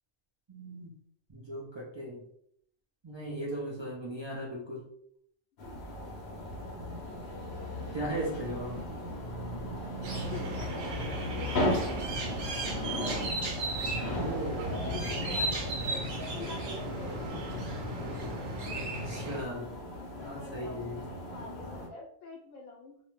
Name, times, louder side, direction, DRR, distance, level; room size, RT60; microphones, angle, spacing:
voice 1, 0.5-0.9 1.3-2.2 3.0-4.9 7.9-8.8 14.1-14.7 18.7-19.7 20.2-21.0, right 1 dB, 50° right, -5 dB, 0.3 m, -37 dB
sound 1, 5.6-21.9, left 1 dB, 65° left, 0.8 m, -37 dB
sound 2, 10.0-19.4, right 2 dB, 75° right, 1.0 m, -36 dB
voice 2, 10.2-11.6 14.4-17.4 19.9-20.9 21.3-23.0, left 3 dB, 90° left, 0 dB, 1.0 m, -46 dB
2.6 x 2.1 x 3.0 m, 0.69 s
omnidirectional pair, 1.3 m